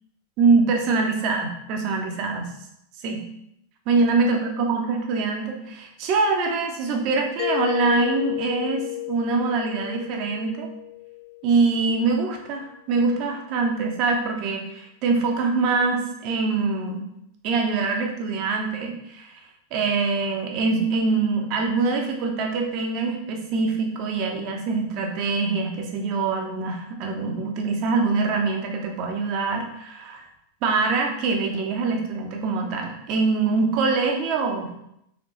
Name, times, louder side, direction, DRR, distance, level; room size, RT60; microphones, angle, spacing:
voice 1, 0.4-2.5 3.0-3.2 3.9-10.7 11.4-17.0 17.4-19.4 19.7-30.2 30.6-34.8, right 4 dB, 40° right, 2 dB, 0.8 m, -24 dB
Mallet percussion, 7.4-12.0, left 21 dB, 45° left, 0.3 m, -32 dB
4.2 x 3.4 x 3.1 m, 0.76 s
figure-of-eight pair, 90°, 0 cm